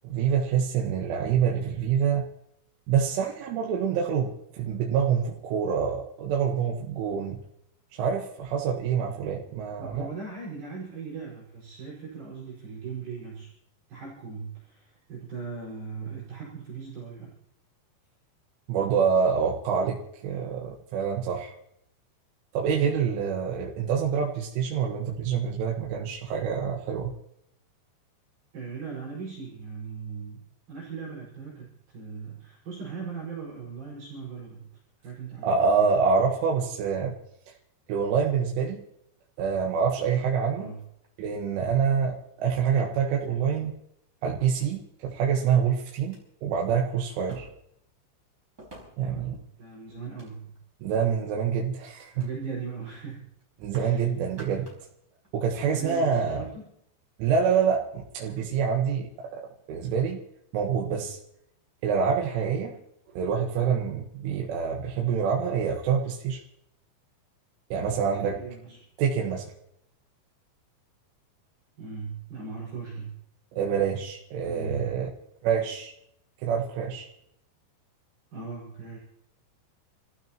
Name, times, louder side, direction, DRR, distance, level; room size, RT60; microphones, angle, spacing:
voice 1, 0.0-2.2 2.9-7.4 7.9-10.1 18.7-21.5 22.5-27.1 35.4-37.2 37.5-37.6 37.9-38.8 39.4-40.7 41.2-43.7 44.2-47.5 49.0-49.4 50.8-52.1 53.6-54.7 55.3-56.4 57.2-59.4 59.7-60.2 60.5-61.2 61.8-62.8 63.2-66.4 67.7-68.4 69.0-69.5 73.5-75.1 75.4-75.9 76.4-77.1, right 6 dB, 85° right, -1 dB, 3.9 m, -26 dB
voice 2, 9.8-13.5 13.9-17.3 28.5-30.4 30.7-34.7 35.0-35.9 40.6-40.8 49.0-50.6 52.1-53.3 53.7-54.1 54.5-54.6 55.7-56.7 68.0-68.8 71.8-73.2 74.5-75.1 78.3-79.0, right 5 dB, 50° right, -7 dB, 6.7 m, -39 dB
sound 1, 40.6-41.6 42.4-42.5 43.2-43.8 44.7-44.8 45.5-45.6 46.0-46.2 47.3-47.8 48.6-49.2 49.9-50.7 51.3-51.6 52.2-52.4 52.7-52.8 53.1-54.0 54.2-54.9 55.2-55.3, right 1 dB, 20° right, 5.3 m, -51 dB
29.5 x 15.5 x 3.0 m, 0.73 s
omnidirectional pair, 5.5 m